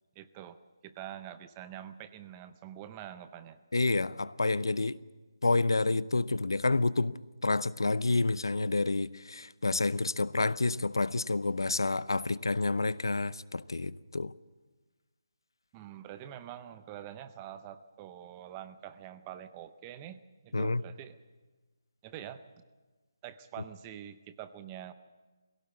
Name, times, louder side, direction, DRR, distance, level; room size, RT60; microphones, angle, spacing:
voice 1, 0.2-0.6 0.8-3.6 15.7-21.2 22.0-22.4 23.2-24.9, right 11 dB, 15° right, 0.6 m, -45 dB
voice 2, 3.7-5.0 5.4-14.3 20.5-20.8, left 3 dB, 90° left, 0.7 m, -29 dB
19.0 x 17.0 x 8.4 m
figure-of-eight pair, 170°, 2 cm